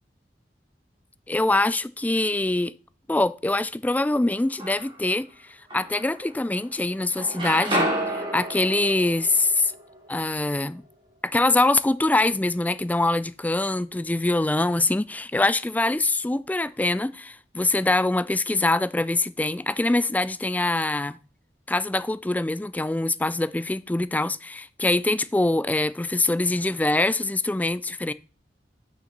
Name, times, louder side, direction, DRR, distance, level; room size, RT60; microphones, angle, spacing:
voice 1, 1.3-2.7 3.1-5.3 5.7-9.7 10.1-10.8 11.2-21.2 21.7-28.1, left 2 dB, 10° left, 0.3 m, -24 dB
sound 1, 4.3-5.1 5.7-6.7 7.0-10.9, right 1 dB, 30° right, 2.7 m, -31 dB
6.4 x 6.0 x 5.8 m
head